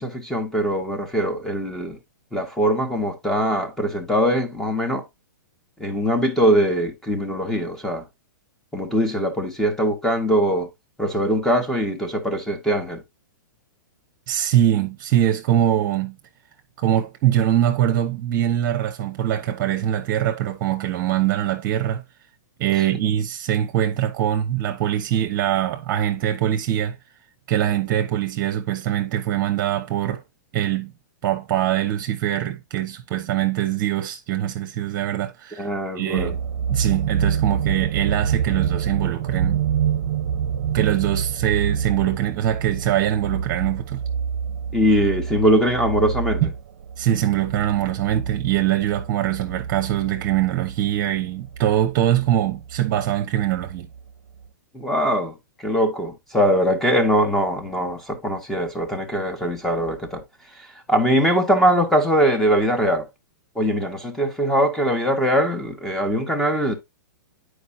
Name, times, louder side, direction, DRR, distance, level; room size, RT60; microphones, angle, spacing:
voice 1, 0.0-2.0 2.3-5.0 5.8-8.0 8.7-10.7 11.0-13.0 35.6-36.3 44.7-46.4 54.7-55.3 55.6-60.2 60.9-63.0 63.5-66.7, equal, 5° left, 1.4 m, -21 dB
voice 2, 14.3-16.2 16.8-22.0 22.6-26.9 27.5-30.2 30.5-30.9 31.2-35.7 36.0-36.4 36.7-39.6 40.7-44.0 46.4-46.5 47.0-53.9, right 11 dB, 40° right, 1.0 m, -23 dB
sound 1, 36.2-54.0 54.4-54.5, right 7 dB, 55° right, 0.7 m, -27 dB
9.4 x 4.8 x 2.7 m
hypercardioid pair, 145°, 11 cm